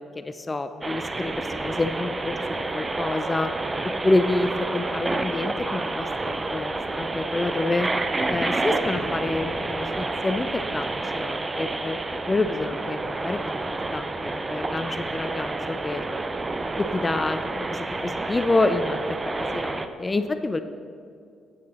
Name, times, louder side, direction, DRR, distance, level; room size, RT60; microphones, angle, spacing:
voice 1, 0.1-2.4 2.7-3.5 3.8-7.9 8.3-12.0 12.3-16.1 16.8-20.6, left 2 dB, 25° left, 10 dB, 0.5 m, -28 dB
sound 1, 0.8-19.9, right 2 dB, 25° right, 0.7 m, -29 dB
9.1 x 9.0 x 4.3 m, 2.4 s
hypercardioid pair, 45°, 0 cm